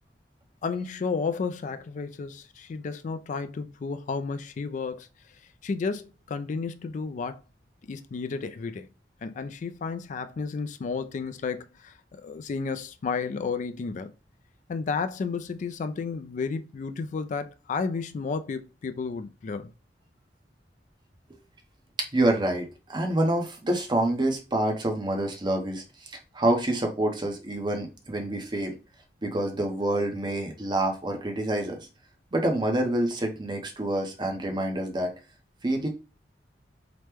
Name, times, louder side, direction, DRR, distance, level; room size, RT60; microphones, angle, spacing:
voice 1, 0.6-5.1 5.6-7.4 7.9-8.9 9.2-14.1 14.7-19.7, left 5 dB, 45° left, 0.3 m, -32 dB
voice 2, 22.1-28.7 29.2-31.8 32.3-35.1 35.6-35.9, right 1 dB, 25° right, 0.6 m, -27 dB
3.0 x 2.1 x 3.4 m
head